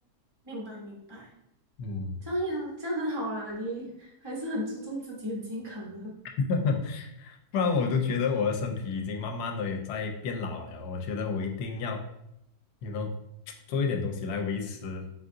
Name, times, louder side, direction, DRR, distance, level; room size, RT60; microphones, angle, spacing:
voice 1, 0.4-1.3 2.2-6.1, equal, 35° right, -3 dB, 0.4 m, -34 dB
voice 2, 1.8-2.3 6.5-12.0 12.8-13.1 13.7-15.1, left 5 dB, 80° left, 3 dB, 1.1 m, -30 dB
3.9 x 3.7 x 2.5 m, 0.80 s
omnidirectional pair, 1.7 m